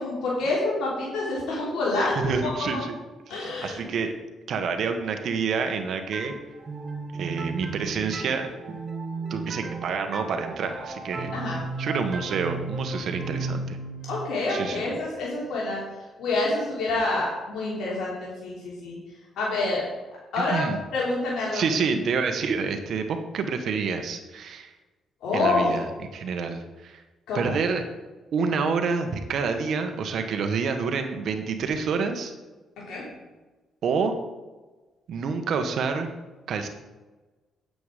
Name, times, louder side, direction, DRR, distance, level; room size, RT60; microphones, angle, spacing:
voice 1, 0.0-2.8 3.3-3.9 11.3-11.6 14.0-15.8 16.2-19.0 19.4-19.8 20.3-20.6 20.9-21.7 25.2-25.8 27.3-27.5 32.9-33.0, left 2 dB, 80° left, -5 dB, 3.3 m, -27 dB
voice 2, 2.1-3.0 3.3-4.1 4.5-6.3 7.1-8.8 9.3-13.8 14.5-14.9 20.4-20.8 21.5-24.7 25.3-27.0 27.3-27.8 28.3-32.3 33.8-34.2 35.1-36.1 36.5-36.7, right 5 dB, 65° right, 6 dB, 1.4 m, -28 dB
sound 1, 6.1-15.7, right 3 dB, 35° right, 1.5 m, -35 dB
9.5 x 7.8 x 5.1 m, 1.2 s
cardioid pair, 90°, 0 cm